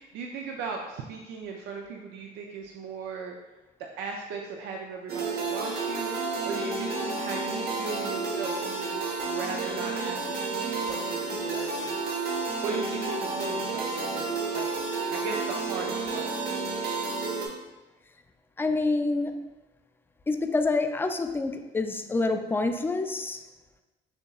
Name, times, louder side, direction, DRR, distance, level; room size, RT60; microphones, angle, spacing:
voice 1, 0.0-3.4 4.0-12.1 12.6-14.3 14.5-14.7 15.1-16.3, right 5 dB, 85° right, 1 dB, 0.5 m, -37 dB
sound 1, 5.1-17.5, right 3 dB, 65° right, 1.0 m, -31 dB
Alarm, 5.9-15.3, left 1 dB, 65° left, 0.8 m, -46 dB
voice 2, 18.6-19.5 20.3-23.4, left 3 dB, 15° left, 6 dB, 0.3 m, -27 dB
6.7 x 2.8 x 2.3 m, 1.1 s
cardioid pair, 110°, 17 cm